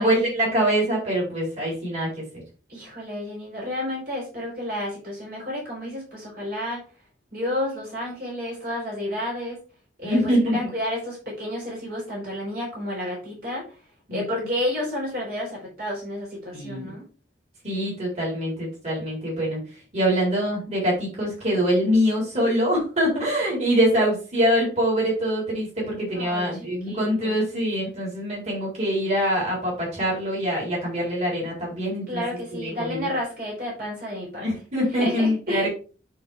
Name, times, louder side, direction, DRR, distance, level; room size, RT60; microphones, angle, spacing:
voice 1, 0.0-2.2 10.0-10.7 14.1-14.3 16.5-16.9 17.6-19.6 19.9-32.2 32.5-33.1 34.4-35.7, equal, 40° right, -4 dB, 4.4 m, -24 dB
voice 2, 2.7-6.8 7.3-9.6 10.0-13.6 14.1-17.0 26.1-27.4 32.1-34.5 35.0-35.7, left 1 dB, 55° right, -3 dB, 4.2 m, -31 dB
9.9 x 4.2 x 3.5 m, 0.36 s
head